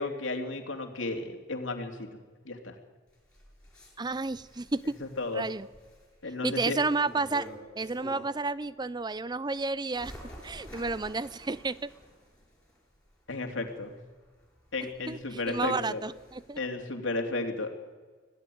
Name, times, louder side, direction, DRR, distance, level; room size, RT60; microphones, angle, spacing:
voice 1, 0.0-2.1 2.4-2.7 5.2-5.4 6.2-6.8 13.3-14.0 14.7-16.0 16.6-17.7, left 2 dB, 85° left, 4 dB, 3.0 m, -33 dB
Bird, 3.1-8.5 9.0-16.6, equal, 5° left, 7.8 m, -51 dB
voice 2, 4.0-5.0 5.3-5.7 6.4-7.5 7.8-10.1 10.4-11.9 15.1-16.6, right 3 dB, 20° right, 18 dB, 0.6 m, -31 dB
25.5 x 16.5 x 9.4 m, 1.4 s
head